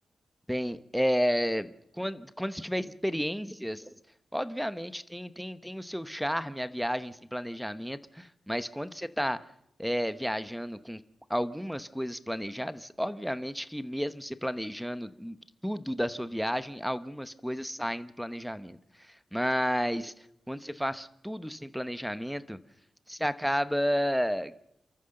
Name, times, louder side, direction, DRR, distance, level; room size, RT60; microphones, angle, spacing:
voice 1, 0.5-3.9 4.3-9.4 9.8-11.0 11.3-15.4 15.6-22.6 23.1-24.5, equal, ahead, 13 dB, 0.9 m, -32 dB
29.0 x 14.0 x 6.6 m, 0.78 s
wide cardioid pair, 140°, 0 cm